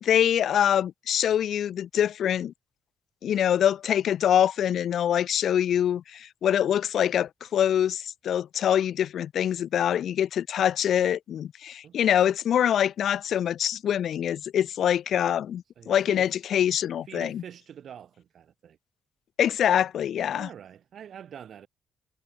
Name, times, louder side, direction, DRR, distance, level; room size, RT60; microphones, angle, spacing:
voice 1, 0.0-2.5 3.2-17.4 19.4-20.5, left 10 dB, 65° left, 0.5 m, -24 dB
voice 2, 11.8-12.3 15.8-16.3 17.1-18.8 20.3-21.7, right 9 dB, 60° right, 2.4 m, -45 dB
cardioid pair, 90°, 0 cm